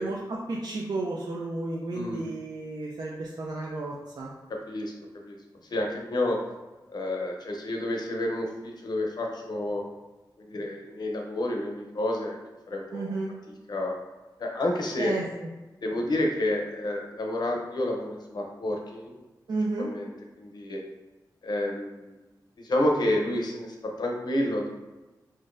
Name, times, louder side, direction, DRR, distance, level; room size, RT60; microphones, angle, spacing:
voice 1, 0.0-4.3 12.9-13.3 15.0-15.2 19.5-19.9, right 2 dB, 65° right, -3 dB, 0.4 m, -32 dB
voice 2, 1.9-2.2 4.5-5.4 5.7-6.4 6.9-9.8 10.5-12.4 12.7-13.1 13.7-14.0 14.4-15.1 15.8-19.1 19.8-20.1 20.4-20.8 21.4-22.1 22.6-24.7, left 1 dB, 65° left, 1 dB, 0.6 m, -29 dB
3.8 x 2.5 x 2.5 m, 1.1 s
wide cardioid pair, 75°, 8 cm